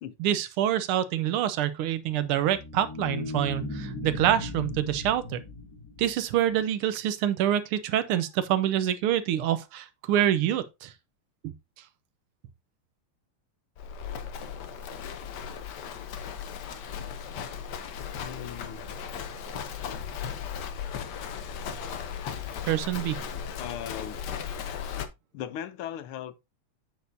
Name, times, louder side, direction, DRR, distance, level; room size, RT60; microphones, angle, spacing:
voice 1, 0.2-5.4 6.0-10.9 11.4-11.5 22.6-23.2, right 11 dB, 85° right, 1.6 m, -26 dB
sound 1, 2.1-6.6, left 3 dB, 45° left, 2.0 m, -37 dB
Livestock farm animals working animals, 13.8-25.1, left 7 dB, 60° left, 1.3 m, -36 dB
voice 2, 18.2-18.9 23.6-24.2 25.3-26.4, left 10 dB, 80° left, 1.6 m, -38 dB
8.2 x 6.4 x 2.7 m
omnidirectional pair, 2.4 m